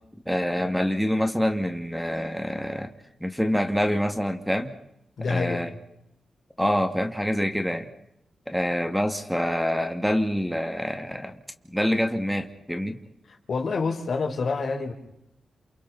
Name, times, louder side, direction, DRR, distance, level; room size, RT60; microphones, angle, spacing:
voice 1, 0.3-2.9 3.2-4.7 5.3-5.7 6.6-7.9 8.5-11.4 11.7-13.0, equal, ahead, 6 dB, 2.2 m, -26 dB
voice 2, 5.2-5.6 13.5-14.9, left 4 dB, 65° left, 3 dB, 4.3 m, -27 dB
29.0 x 28.0 x 4.2 m, 0.80 s
cardioid pair, 65°, 0 cm